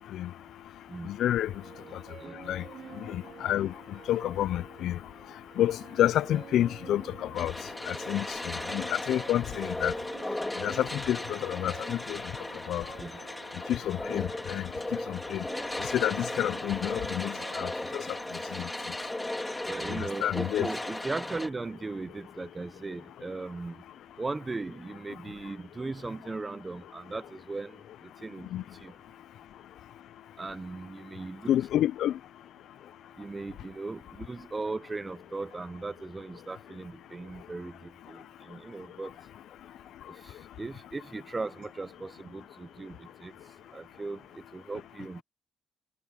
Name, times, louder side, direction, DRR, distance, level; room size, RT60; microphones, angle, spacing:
voice 1, 1.0-1.5 2.5-2.6 3.1-3.7 4.1-5.0 5.6-7.5 7.9-9.9 10.6-12.2 12.7-12.9 13.7-14.7 15.1-15.4 15.8-18.0 18.5-18.7 19.9-20.7 28.5-28.6 31.5-32.2, left 12 dB, 75° left, 0.4 m, -29 dB
sound 1, 1.5-19.4, right 7 dB, 55° right, 2.3 m, -49 dB
sound 2, 7.4-21.5, left 1 dB, 10° left, 2.5 m, -36 dB
voice 2, 18.3-18.6 19.7-23.8 24.2-27.8 28.2-28.5 28.8-28.9 30.4-31.5 33.2-39.1 40.2-43.3 43.7-45.2, right 3 dB, 25° right, 0.7 m, -38 dB
cardioid pair, 90°, 0 cm